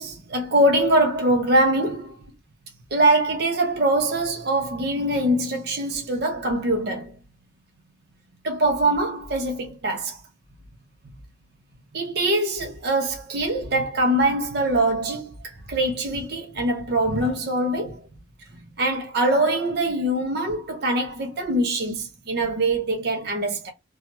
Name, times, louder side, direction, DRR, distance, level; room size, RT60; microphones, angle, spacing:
voice 1, 0.0-2.1 2.9-7.1 8.4-10.2 11.9-15.3 15.7-18.0 18.8-23.7, right 1 dB, 55° right, 0.6 m, -23 dB
2.7 x 2.3 x 2.8 m
head